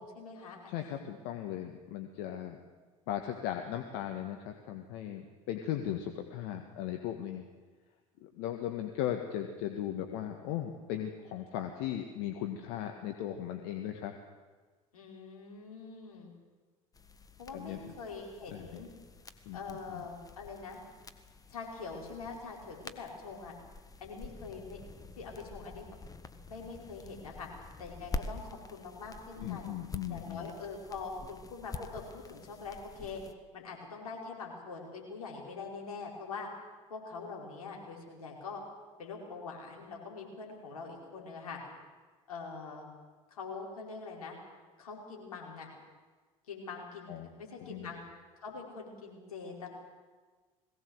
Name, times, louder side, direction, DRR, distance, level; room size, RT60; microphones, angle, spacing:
voice 1, 0.0-1.0 14.9-16.3 17.4-18.9 19.5-20.8 21.5-23.5 24.0-24.8 25.2-25.9 26.5-27.5 27.8-29.7 30.1-33.2 33.5-36.5 36.9-38.6 39.0-41.6 42.3-42.9 43.3-44.4 44.8-45.7 46.5-47.1 47.4-48.0 48.4-49.7, left 4 dB, 80° left, -1 dB, 5.0 m, -44 dB
voice 2, 0.7-2.6 3.1-7.4 8.2-14.1 17.5-17.9 18.5-18.8 19.5-20.0 29.4-30.5 47.1-47.3 47.6-47.9, left 11 dB, 60° left, 5 dB, 1.8 m, -37 dB
sound 1, 16.9-33.3, left 3 dB, 20° left, 1.6 m, -47 dB
21.0 x 17.5 x 8.0 m, 1.4 s
hypercardioid pair, 70°, 18 cm